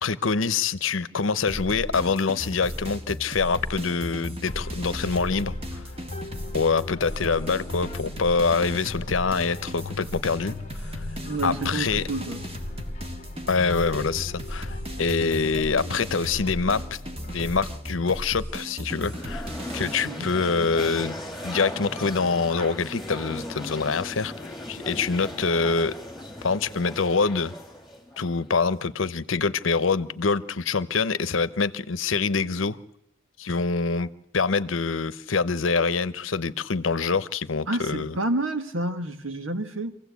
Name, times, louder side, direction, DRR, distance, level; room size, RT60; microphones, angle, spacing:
voice 1, 0.0-5.8 6.5-11.1 11.4-12.0 13.5-16.8 17.3-21.1 21.4-24.3 24.7-25.9 26.4-27.5 28.2-32.8 33.4-34.1 34.3-38.1, left 4 dB, 85° left, 0.8 m, -25 dB
sound 1, 1.5-19.9, equal, 30° right, 1.7 m, -36 dB
sound 2, 4.5-17.8, left 1 dB, 35° left, 0.9 m, -40 dB
voice 2, 11.2-12.4 20.0-20.4 37.7-40.0, right 2 dB, 85° right, 1.5 m, -29 dB
sound 3, 18.8-28.8, left 1 dB, ahead, 2.6 m, -37 dB
25.0 x 16.0 x 8.3 m
head